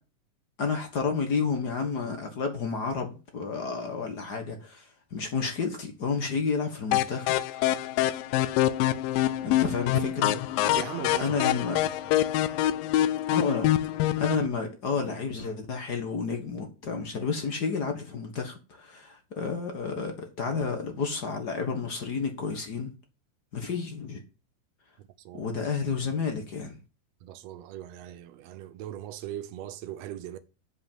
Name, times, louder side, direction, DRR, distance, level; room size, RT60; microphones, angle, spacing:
voice 1, 0.6-7.9 9.4-10.6 11.2-11.8 13.3-13.7 14.2-22.9 23.5-24.2 25.3-26.8, left 5 dB, 55° left, 1.1 m, -31 dB
sound 1, 6.9-14.5, left 13 dB, 85° left, 2.3 m, -25 dB
voice 2, 10.7-11.4 12.1-12.2 25.2-25.4 27.2-30.4, right 12 dB, 80° right, 1.5 m, -39 dB
8.3 x 5.3 x 7.3 m
omnidirectional pair, 3.9 m